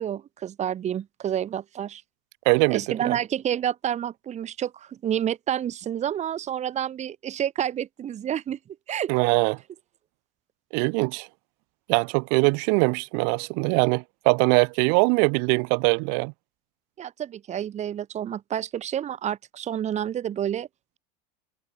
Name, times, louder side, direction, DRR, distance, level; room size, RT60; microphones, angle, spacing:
voice 1, 0.0-2.0 2.7-8.6 8.9-9.1 17.0-20.7, right 10 dB, 35° right, 1.6 m, -29 dB
voice 2, 2.5-3.2 9.1-9.6 10.7-11.3 11.9-16.3, right 40 dB or more, 60° right, 0.5 m, -22 dB
hypercardioid pair, 95°, 20 cm